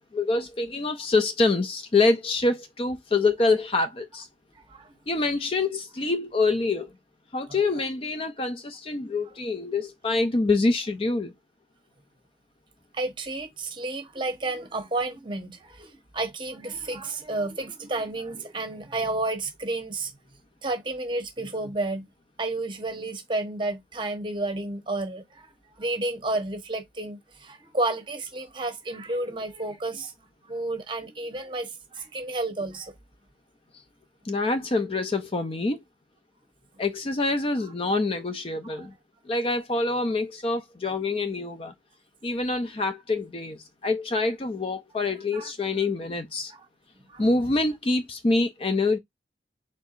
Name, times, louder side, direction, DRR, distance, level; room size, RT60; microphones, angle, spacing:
voice 1, 0.1-4.3 5.1-6.9 7.3-11.3 34.2-35.8 36.8-38.9 39.3-41.7 42.2-46.5 47.2-49.0, left 3 dB, 30° left, 0.5 m, -26 dB
voice 2, 12.9-20.1 20.6-22.1 22.4-25.5 25.8-30.1 30.5-32.9 38.7-38.9 45.3-45.5 46.5-46.6 47.1-47.3, right 2 dB, 25° right, 1.0 m, -31 dB
4.5 x 3.6 x 2.4 m
head